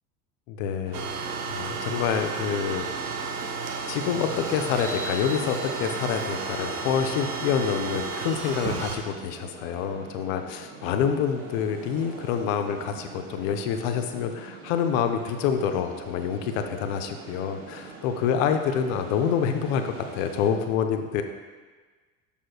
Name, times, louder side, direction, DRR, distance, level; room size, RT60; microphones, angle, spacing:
voice 1, 0.5-3.2 3.9-21.2, left 7 dB, 60° left, 6 dB, 0.6 m, -27 dB
sound 1, 0.8-20.5, right 4 dB, 60° right, 1.1 m, -44 dB
sound 2, 0.9-9.0, right 4 dB, 85° right, 0.7 m, -32 dB
6.8 x 6.1 x 2.3 m, 1.4 s
figure-of-eight pair, 65°, 44 cm